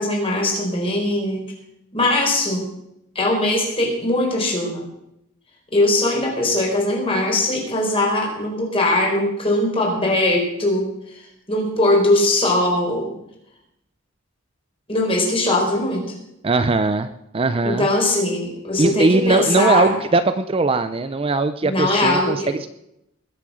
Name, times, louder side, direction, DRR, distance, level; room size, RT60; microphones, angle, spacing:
voice 1, 0.0-1.4 1.9-2.6 3.1-4.8 5.7-13.1 14.9-16.0 17.6-19.9 21.6-22.7, left 1 dB, 25° left, -1 dB, 4.6 m, -20 dB
voice 2, 16.4-17.9 18.8-22.4, right 3 dB, 25° right, 11 dB, 0.5 m, -20 dB
21.0 x 7.4 x 6.3 m, 0.83 s
head